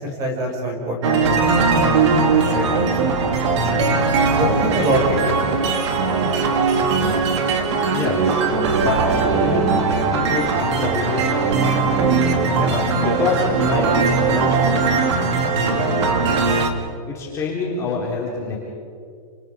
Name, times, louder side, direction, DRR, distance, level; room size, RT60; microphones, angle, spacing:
voice 1, 0.0-2.0 2.3-3.0 4.4-5.2, equal, 20° right, 1 dB, 5.9 m, -25 dB
sound 1, 1.0-16.7, right 4 dB, 50° right, 2.7 m, -19 dB
voice 2, 7.9-8.4 8.7-9.8 10.1-15.0 15.5-16.3 17.1-18.6, left 4 dB, 15° left, -5 dB, 4.0 m, -26 dB
29.5 x 28.0 x 5.3 m, 2.3 s
hypercardioid pair, 170°, 19 cm